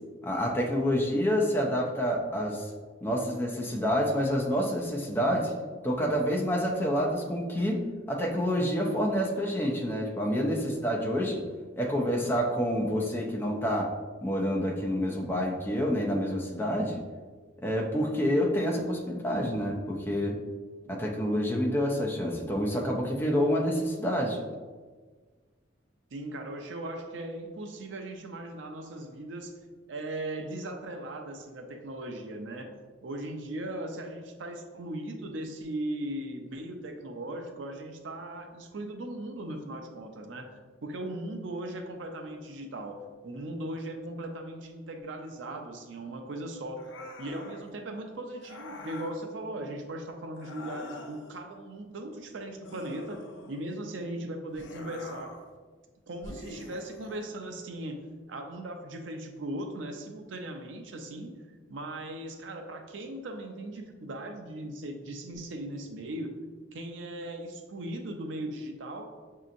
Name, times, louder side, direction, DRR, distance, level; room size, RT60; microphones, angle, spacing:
voice 1, 0.2-2.7 3.0-5.5 5.8-11.4 11.8-13.9 14.2-17.0 17.6-20.4 20.9-24.4, equal, 10° left, -1 dB, 0.5 m, -28 dB
voice 2, 26.1-29.5 29.9-32.7 33.0-40.5 40.8-46.9 47.2-55.3 56.1-58.0 58.3-61.3 61.7-66.4 66.7-69.1, right 1 dB, 85° right, 4 dB, 0.5 m, -38 dB
sound 1, 46.8-47.7 48.4-49.2 50.3-51.4 52.6-53.8 54.5-55.5 56.2-57.2, left 2 dB, 80° left, 0.5 m, -45 dB
6.0 x 2.8 x 2.5 m, 1.4 s
head